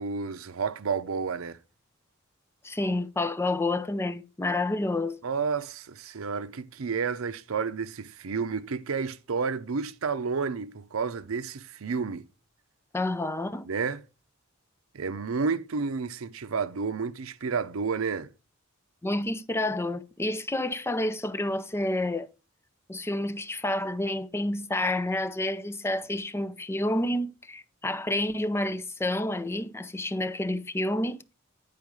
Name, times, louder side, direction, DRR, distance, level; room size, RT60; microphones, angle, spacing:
voice 1, 0.0-1.6 5.2-12.2 13.7-14.0 14.9-18.3, right 5 dB, 85° right, 0.6 m, -31 dB
voice 2, 2.6-5.2 12.9-13.7 19.0-22.3 22.9-31.3, left 1 dB, 10° left, 0.5 m, -29 dB
9.6 x 4.6 x 4.7 m
head